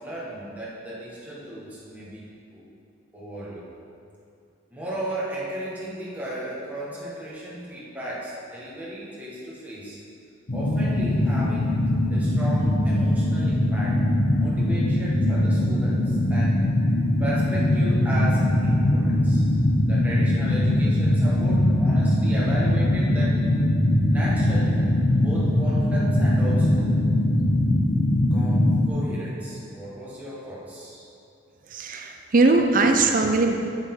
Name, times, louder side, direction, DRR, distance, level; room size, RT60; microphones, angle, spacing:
voice 1, 0.0-2.2 2.5-2.6 3.1-3.6 4.7-10.0 10.5-11.8 12.1-16.6 17.2-19.4 19.8-23.5 24.1-24.8 25.1-26.9 28.3-31.0, right 1 dB, 10° right, -8 dB, 1.7 m, -35 dB
sound 1, 10.5-28.9, left 1 dB, 55° left, 0.9 m, -21 dB
voice 2, 31.7-33.5, right 3 dB, 45° right, 4 dB, 0.6 m, -20 dB
9.0 x 6.9 x 3.9 m, 2.6 s
head